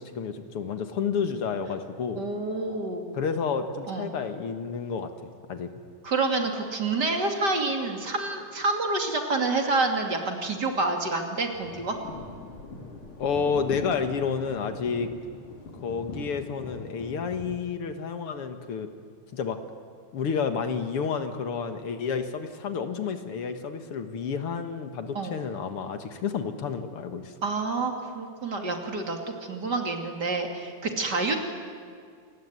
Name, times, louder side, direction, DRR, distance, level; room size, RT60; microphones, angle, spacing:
voice 1, 0.0-2.2 3.1-5.7 13.2-15.1 15.8-18.9 19.3-19.6 20.1-27.3, left 6 dB, 55° left, 8 dB, 2.2 m, -30 dB
voice 2, 2.2-3.1 3.9-4.1 6.0-12.0 25.1-25.4 27.4-29.2 29.5-31.4, right 3 dB, 35° right, 3 dB, 2.9 m, -28 dB
sound 1, 11.5-17.5, left 3 dB, 85° left, 4.8 m, -41 dB
28.5 x 18.5 x 9.6 m, 2.2 s
omnidirectional pair, 3.4 m